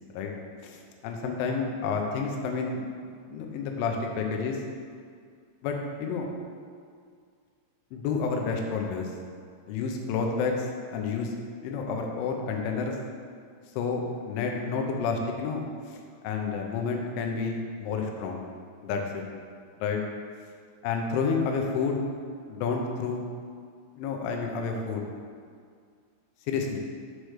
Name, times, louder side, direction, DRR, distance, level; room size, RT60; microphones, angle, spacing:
voice 1, 0.6-4.6 5.6-6.3 7.9-9.1 9.7-11.3 11.6-13.0 13.8-18.4 18.8-19.2 19.8-20.0 20.8-22.0 22.5-23.3 24.0-25.0 26.5-26.8, left 5 dB, 75° left, 2 dB, 3.1 m, -30 dB
7.6 x 5.0 x 6.5 m, 2.1 s
omnidirectional pair, 5.9 m